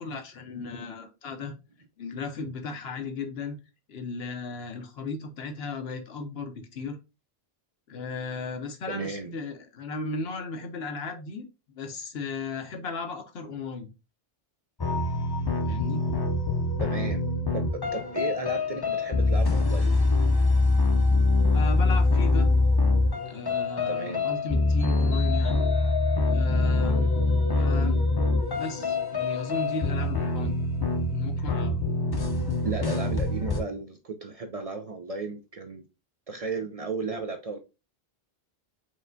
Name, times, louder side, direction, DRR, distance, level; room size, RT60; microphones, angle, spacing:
voice 1, 0.0-1.5 2.0-3.6 3.9-7.0 7.9-11.4 11.7-13.9 15.6-16.0 21.5-22.5 23.3-25.6 26.2-27.1 27.6-28.0 28.5-30.6 31.1-31.8, left 3 dB, 80° left, 1.0 m, -35 dB
voice 2, 8.9-9.3 16.8-19.9 23.9-24.3 31.9-32.0 32.6-35.8 36.3-37.6, right 4 dB, 50° right, 0.5 m, -34 dB
sound 1, 14.8-33.6, left 3 dB, 30° left, 0.6 m, -24 dB
4.8 x 3.2 x 2.6 m
omnidirectional pair, 1.0 m